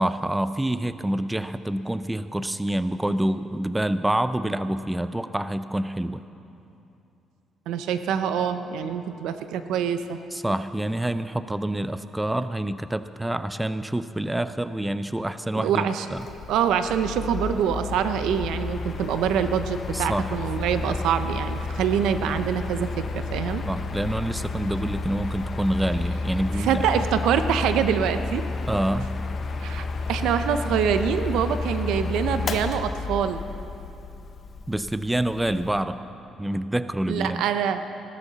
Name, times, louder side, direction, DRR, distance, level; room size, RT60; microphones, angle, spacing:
voice 1, 0.0-6.2 10.3-16.3 19.9-20.3 20.8-21.0 23.7-27.0 28.7-29.1 34.7-36.0 36.4-37.4, right 1 dB, 10° right, 12 dB, 0.4 m, -27 dB
voice 2, 7.7-10.2 15.6-16.1 16.5-23.6 26.6-28.4 29.6-33.4 37.1-37.8, right 8 dB, 90° right, 9 dB, 0.7 m, -25 dB
Mechanical fan, 16.2-35.8, left 3 dB, 45° left, 0.8 m, -31 dB
16.5 x 13.0 x 4.1 m, 2.8 s
cardioid pair, 110°, 0 cm